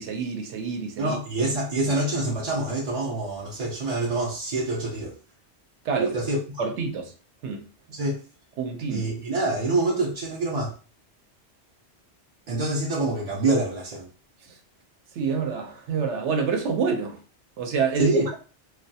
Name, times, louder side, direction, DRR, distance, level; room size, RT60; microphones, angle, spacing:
voice 1, 0.0-1.2 1.9-2.0 5.8-6.1 6.6-7.1 7.4-7.6 8.6-9.1 15.2-17.2 17.6-18.2, right 5 dB, 75° right, 0.9 m, -27 dB
voice 2, 1.0-5.2 5.9-6.6 7.9-8.2 8.9-10.8 12.5-14.1 18.0-18.3, right 2 dB, 55° right, 0.4 m, -26 dB
2.2 x 2.2 x 2.6 m
omnidirectional pair, 1.2 m